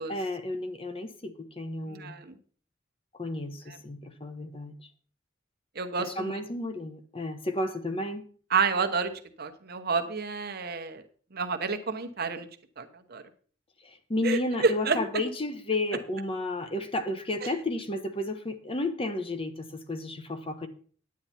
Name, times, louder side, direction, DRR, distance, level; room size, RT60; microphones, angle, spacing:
voice 1, 0.1-2.2 3.1-4.7 6.0-8.2 13.8-20.7, left 2 dB, 30° left, 8 dB, 1.0 m, -32 dB
voice 2, 1.9-2.3 3.7-3.8 5.8-6.4 8.5-9.1 9.4-11.0 11.3-12.5 12.8-13.2 14.2-15.0, right 5 dB, 50° right, 8 dB, 1.0 m, -29 dB
9.5 x 9.4 x 4.3 m, 0.43 s
head